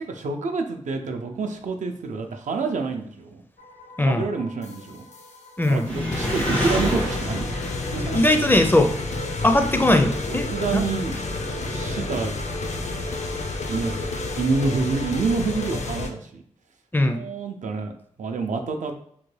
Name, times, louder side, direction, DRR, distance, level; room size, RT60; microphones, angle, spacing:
voice 1, 0.0-3.4 4.0-5.1 5.7-7.5 7.8-8.2 10.3-12.3 13.7-14.0 14.4-16.4 17.0-17.9 18.2-19.0, right 4 dB, 80° right, 4 dB, 0.4 m, -28 dB
sound 1, 3.6-16.1, left 3 dB, 65° left, 0.5 m, -31 dB
voice 2, 4.0-4.3 5.6-5.9 8.1-8.9 9.4-10.5 10.7-10.8 16.9-17.2, left 1 dB, 15° left, 5 dB, 0.4 m, -19 dB
Engine, 5.8-16.0, equal, 85° left, 1.5 m, -32 dB
3.7 x 2.2 x 3.2 m, 0.65 s
cardioid pair, 60°, 13 cm